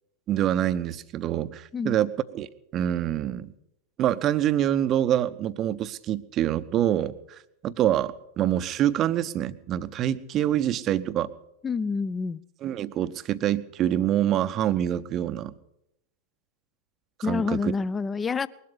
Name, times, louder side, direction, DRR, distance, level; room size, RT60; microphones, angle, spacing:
voice 1, 0.3-2.5 2.7-3.5 4.0-11.3 12.6-15.5 17.3-17.7, right 11 dB, 30° right, 14 dB, 0.7 m, -26 dB
voice 2, 11.6-12.4 17.2-18.5, left 5 dB, 15° left, 20 dB, 0.5 m, -27 dB
20.5 x 12.5 x 5.5 m, 0.82 s
figure-of-eight pair, 90°, 0 cm